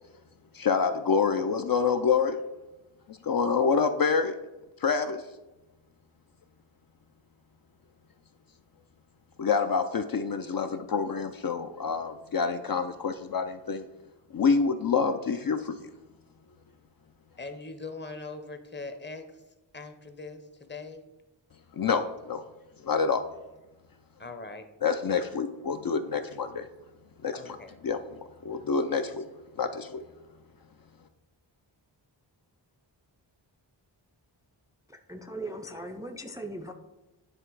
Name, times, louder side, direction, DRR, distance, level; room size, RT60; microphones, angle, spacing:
voice 1, 0.5-2.4 3.1-4.4 4.8-5.2 9.4-13.8 14.3-15.9 21.7-22.4 22.8-23.2 24.8-26.7 27.2-27.6 27.8-28.0 28.4-29.2 29.6-30.0, left 5 dB, 50° left, 7 dB, 0.5 m, -27 dB
voice 2, 17.4-19.4 19.7-21.0 24.2-24.7 25.2-25.3 26.1-26.2 27.3-27.7, left 3 dB, 25° left, 8 dB, 0.8 m, -41 dB
voice 3, 35.1-36.7, right 1 dB, 10° right, 5 dB, 0.4 m, -38 dB
9.7 x 3.3 x 4.6 m, 1.1 s
wide cardioid pair, 95°, 45 cm